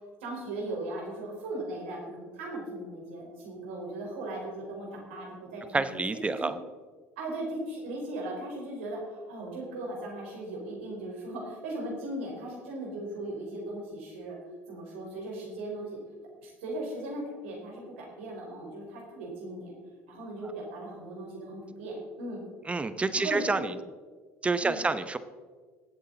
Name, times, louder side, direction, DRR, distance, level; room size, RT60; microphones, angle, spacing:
voice 1, 0.2-6.0 6.4-6.5 7.2-14.4 14.7-16.0 16.4-19.7 20.1-22.4 23.1-23.7 24.6-24.9, right 1 dB, 85° right, -2 dB, 4.4 m, -38 dB
voice 2, 5.7-6.6 22.7-23.7 24.4-25.2, right 3 dB, 20° right, 12 dB, 0.9 m, -28 dB
19.0 x 8.0 x 4.0 m, 1.5 s
hypercardioid pair, 80°, 6 cm